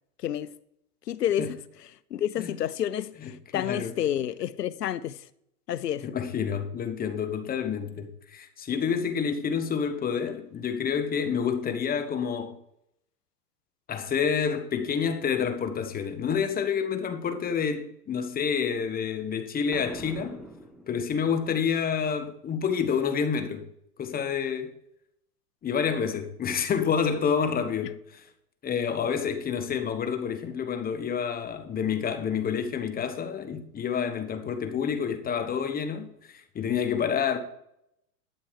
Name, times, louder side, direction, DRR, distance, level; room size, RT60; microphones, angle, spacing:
voice 1, 0.2-0.5 1.1-1.6 2.1-5.2 5.7-6.1, left 10 dB, 90° left, 0.8 m, -29 dB
voice 2, 3.2-3.9 6.0-12.6 13.9-20.4 20.9-23.7 24.0-24.8 25.6-28.2 28.6-37.4, left 7 dB, 20° left, 1.3 m, -28 dB
Boom, 19.7-21.5, equal, ahead, 1.0 m, -44 dB
12.0 x 7.0 x 4.7 m
hypercardioid pair, 120°, 47 cm